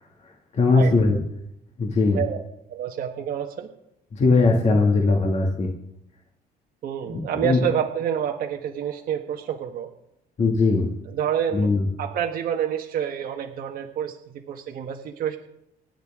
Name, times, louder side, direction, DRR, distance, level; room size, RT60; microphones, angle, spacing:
voice 1, 0.6-1.2 1.8-2.2 4.2-5.7 7.1-7.6 10.4-10.9 11.5-11.8, left 3 dB, 40° left, 0 dB, 2.3 m, -19 dB
voice 2, 2.7-3.7 6.8-9.9 11.0-11.7 12.0-15.4, right 9 dB, 60° right, 3 dB, 1.4 m, -28 dB
27.5 x 9.2 x 3.7 m, 0.83 s
cardioid pair, 110°, 17 cm